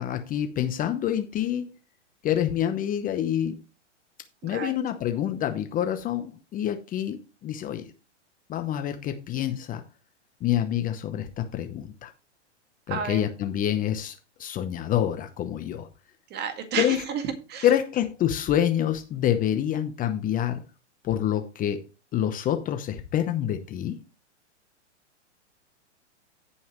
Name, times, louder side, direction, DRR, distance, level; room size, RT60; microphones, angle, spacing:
voice 1, 0.0-1.6 2.2-3.6 4.4-7.2 7.4-7.9 8.5-9.8 10.4-12.1 12.9-15.9 16.8-17.0 17.6-20.6 21.0-21.8 22.1-23.9, left 10 dB, 25° left, 0.9 m, -27 dB
voice 2, 4.4-4.7 12.9-13.3 16.3-17.7, right 7 dB, 30° right, 2.0 m, -31 dB
16.0 x 5.6 x 3.1 m
hypercardioid pair, 120°, 36 cm